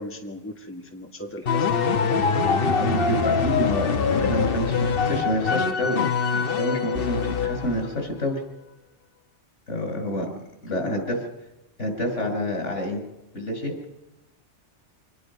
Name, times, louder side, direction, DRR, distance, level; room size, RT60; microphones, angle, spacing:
voice 1, 0.0-1.8 10.7-11.0, left 1 dB, 10° left, 2 dB, 1.8 m, -37 dB
sound 1, 1.5-7.9, left 5 dB, 55° left, 1.2 m, -24 dB
voice 2, 2.6-8.4 9.7-10.3 10.6-11.2 11.8-13.0 13.3-13.7, equal, 75° left, 3 dB, 5.8 m, -28 dB
26.5 x 19.5 x 5.4 m, 0.95 s
omnidirectional pair, 1.2 m